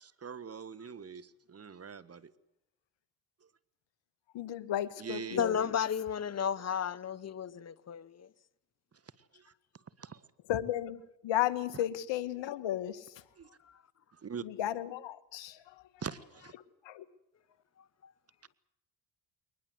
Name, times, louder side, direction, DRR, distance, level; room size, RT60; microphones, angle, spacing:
voice 1, 0.0-2.3 5.0-5.4 9.3-9.5 10.0-10.2 13.4-13.5 14.2-14.4 16.0-16.5, right 6 dB, 30° right, 1.5 m, -43 dB
voice 2, 4.3-5.7 10.5-13.1 14.4-15.7 16.8-17.0, left 12 dB, 65° left, 1.6 m, -34 dB
voice 3, 5.4-8.3 18.0-18.1, left 8 dB, 35° left, 1.0 m, -33 dB
22.0 x 20.0 x 7.9 m
supercardioid pair, 70°, 47 cm